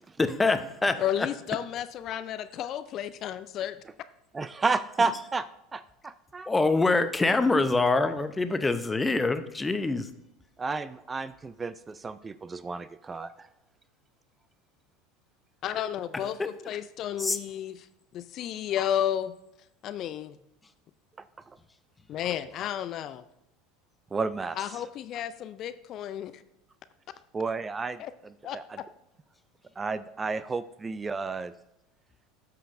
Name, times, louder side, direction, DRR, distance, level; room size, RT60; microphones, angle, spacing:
voice 1, 0.2-1.0 6.5-10.1 17.2-17.4, left 3 dB, 15° left, 10 dB, 0.7 m, -25 dB
voice 2, 1.0-3.8 15.6-17.9 18.1-19.3 19.8-20.4 22.1-23.2 24.6-26.4 28.0-28.1 28.4-28.8, left 10 dB, 45° left, 13 dB, 0.4 m, -32 dB
voice 3, 4.3-6.5 10.6-13.5 24.1-24.6 27.3-28.0 28.5-28.6 29.8-31.5, right 4 dB, 20° right, 15 dB, 0.3 m, -31 dB
13.0 x 5.7 x 2.6 m, 0.85 s
figure-of-eight pair, 75°, 0 cm